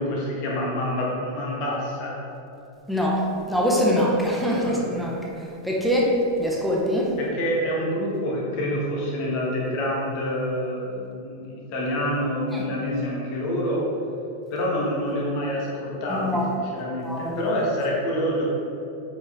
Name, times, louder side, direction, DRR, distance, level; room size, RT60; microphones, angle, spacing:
voice 1, 0.0-2.2 4.6-4.8 7.2-13.8 14.5-18.5, equal, 45° left, -4 dB, 1.5 m, -27 dB
voice 2, 2.9-5.2 5.6-7.2 12.5-12.6 16.1-16.4 17.0-17.3, equal, ahead, -4 dB, 1.4 m, -23 dB
8.0 x 5.0 x 3.6 m, 2.8 s
figure-of-eight pair, 90°, 0 cm